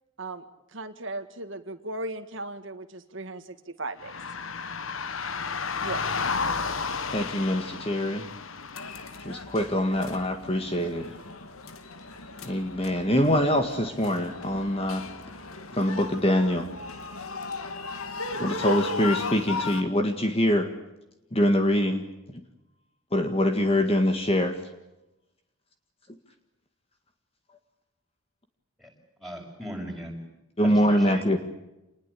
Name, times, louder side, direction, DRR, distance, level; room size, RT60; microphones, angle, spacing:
voice 1, 0.7-4.2 5.8-6.0, right 2 dB, 60° right, 7 dB, 1.8 m, -37 dB
sound 1, 4.0-9.2, left 5 dB, 70° left, 1.3 m, -32 dB
voice 2, 7.1-8.3 9.2-11.2 12.4-15.1 15.7-16.7 18.4-20.7 21.3-22.1 23.1-24.6 30.6-31.4, equal, 30° left, 6 dB, 1.9 m, -24 dB
sound 2, 8.7-19.8, left 3 dB, 90° left, 2.3 m, -37 dB
voice 3, 29.2-30.2 30.6-31.4, equal, ahead, -1 dB, 6.3 m, -38 dB
28.0 x 20.5 x 8.5 m, 0.95 s
head